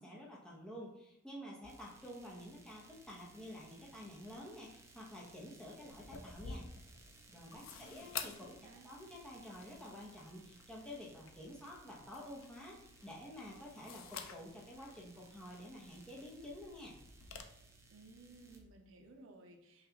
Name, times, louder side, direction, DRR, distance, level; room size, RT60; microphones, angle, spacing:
voice 1, 0.0-6.7 7.3-8.6 8.8-17.0, left 1 dB, 5° left, -5 dB, 0.7 m, -50 dB
sound 1, 1.6-18.6, right 3 dB, 15° right, 0.3 m, -62 dB
sound 2, 5.9-17.4, left 6 dB, 90° left, 0.5 m, -51 dB
voice 2, 7.5-8.1 8.4-8.9 17.9-19.9, right 2 dB, 80° right, 4 dB, 0.6 m, -58 dB
5.6 x 2.3 x 2.9 m, 0.81 s
head